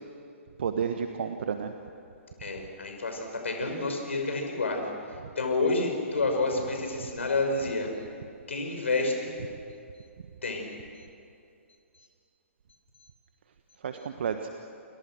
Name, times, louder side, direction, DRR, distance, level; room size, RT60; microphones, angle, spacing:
voice 1, 0.6-1.7 13.8-14.5, right 7 dB, 55° right, 7 dB, 1.4 m, -31 dB
voice 2, 2.4-4.9 5.4-7.9 8.5-9.3 10.4-10.6, left 3 dB, 65° left, 3 dB, 6.0 m, -29 dB
29.0 x 28.5 x 6.4 m, 2.5 s
figure-of-eight pair, 120°, 7 cm